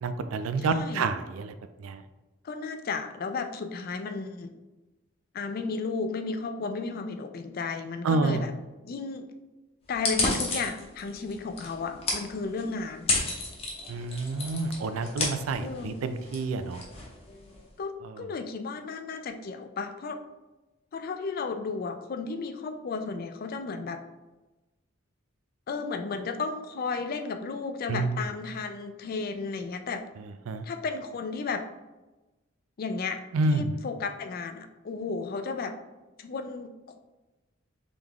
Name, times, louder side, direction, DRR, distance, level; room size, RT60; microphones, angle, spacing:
voice 1, 0.0-2.0 8.0-8.4 13.9-16.8 18.0-18.3 27.9-28.2 30.5-30.6 33.3-33.7, right 3 dB, 85° right, 11 dB, 0.4 m, -29 dB
voice 2, 0.6-1.1 2.4-4.5 5.3-8.5 8.8-9.3 9.9-13.2 15.6-15.9 17.8-20.2 20.9-24.0 25.7-30.0 30.6-31.6 32.8-33.2 33.5-35.7 36.2-36.7, left 4 dB, 45° left, 8 dB, 0.4 m, -33 dB
sound 1, 9.9-17.7, left 2 dB, 30° left, 0.8 m, -33 dB
3.9 x 3.4 x 3.0 m, 1.1 s
head